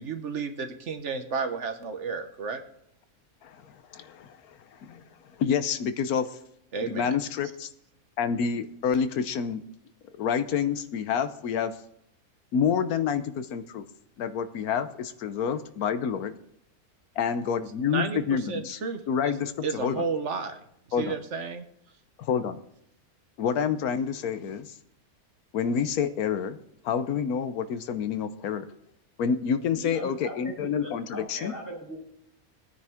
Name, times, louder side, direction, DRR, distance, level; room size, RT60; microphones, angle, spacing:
voice 1, 0.0-2.6 6.7-7.1 17.9-18.2 18.5-19.3 19.6-20.6 21.0-21.6, right 5 dB, 55° right, 8 dB, 1.3 m, -32 dB
voice 2, 3.4-5.0 5.4-6.3 6.8-7.7 8.2-9.6 10.1-11.7 12.5-13.8 14.2-16.3 17.2-18.8 19.1-20.0 20.9-21.2 22.2-22.6 23.4-24.7 25.5-26.6 26.8-28.7 29.2-31.5, left 7 dB, 80° left, 12 dB, 1.3 m, -28 dB
voice 3, 29.7-30.5 30.8-32.0, equal, 15° left, -5 dB, 5.6 m, -40 dB
16.5 x 9.5 x 3.6 m, 0.73 s
omnidirectional pair, 1.6 m